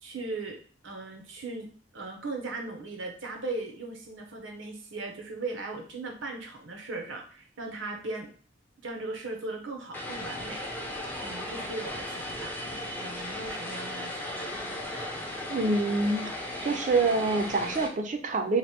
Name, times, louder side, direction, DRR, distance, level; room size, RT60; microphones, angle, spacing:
voice 1, 0.0-8.3 8.8-10.6 11.2-14.6, right 3 dB, 90° right, 3 dB, 0.9 m, -38 dB
Vehicle, 9.9-17.9, left 1 dB, 10° left, 0.5 m, -36 dB
voice 2, 15.5-16.3 16.6-18.6, right 3 dB, 40° right, 5 dB, 0.4 m, -26 dB
3.2 x 2.1 x 4.2 m, 0.43 s
head